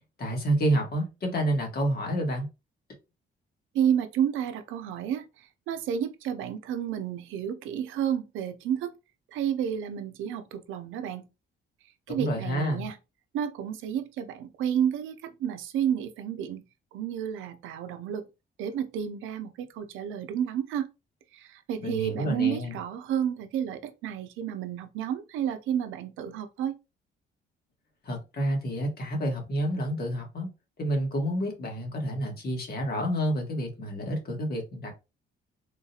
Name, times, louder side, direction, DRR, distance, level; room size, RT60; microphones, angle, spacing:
voice 1, 0.2-2.5 12.1-12.9 21.8-22.8 28.0-30.5 30.8-34.9, right 1 dB, 50° left, 1.5 m, -29 dB
voice 2, 3.7-5.2 5.7-8.9 9.3-11.2 12.1-13.0 13.3-16.6 16.9-18.2 18.6-20.9 21.3-26.8, right 9 dB, 90° right, 0.5 m, -31 dB
3.7 x 2.4 x 2.7 m
cardioid pair, 90°, 20 cm